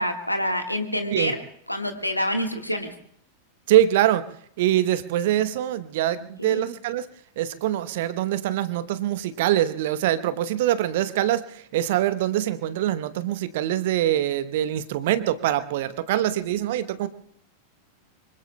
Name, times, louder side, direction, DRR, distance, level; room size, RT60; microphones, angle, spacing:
voice 1, 0.0-1.4 1.7-2.9 6.4-6.7, equal, 90° left, 5 dB, 1.5 m, -27 dB
voice 2, 3.7-4.2 4.6-7.0 7.4-11.4 11.7-17.1, right 12 dB, 55° right, 13 dB, 0.9 m, -24 dB
25.0 x 25.0 x 2.2 m, 0.66 s
figure-of-eight pair, 90°, 0 cm